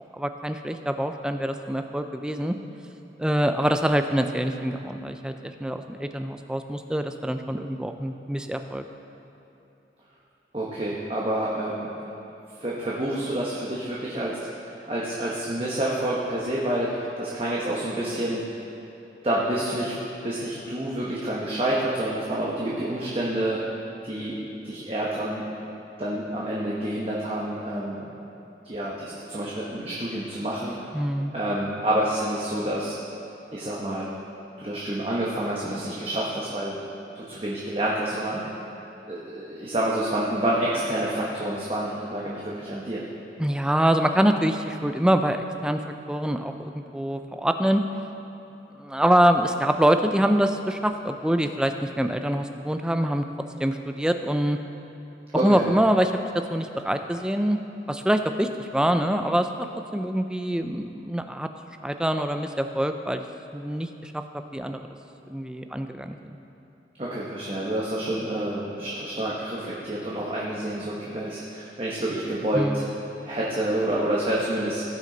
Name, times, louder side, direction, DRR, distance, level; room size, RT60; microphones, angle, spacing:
voice 1, 0.1-2.5 3.2-8.8 30.9-31.3 43.4-45.8 46.1-47.8 48.8-53.2 53.6-54.6 55.4-57.6 57.9-59.7 59.9-61.5 61.8-63.2 63.5-64.9 65.3-66.3 72.5-72.9, equal, 5° right, 7 dB, 0.3 m, -25 dB
voice 2, 10.5-11.9 12.6-14.3 14.6-18.4 19.2-20.0 20.2-23.6 24.0-24.4 24.6-25.5 26.0-28.1 28.6-30.8 31.3-33.0 33.5-34.1 34.6-36.8 37.1-38.4 39.1-43.0 55.3-55.6 67.0-72.8 73.2-74.8, right 1 dB, 30° right, -6 dB, 1.0 m, -28 dB
17.0 x 6.2 x 3.9 m, 3.0 s
head